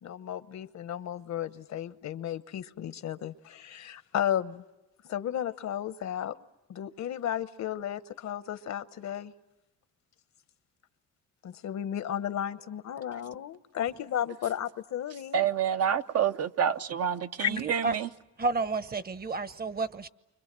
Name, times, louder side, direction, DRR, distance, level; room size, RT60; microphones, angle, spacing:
voice 1, 0.0-4.6 5.1-6.4 6.7-9.3 11.4-15.4 17.4-17.5, left 10 dB, 65° left, 1.0 m, -34 dB
voice 2, 15.3-18.1, right 8 dB, 55° right, 0.9 m, -28 dB
voice 3, 17.5-17.9 18.4-20.1, right 3 dB, 30° right, 1.0 m, -31 dB
29.5 x 25.5 x 7.5 m
cardioid pair, 90°, 30 cm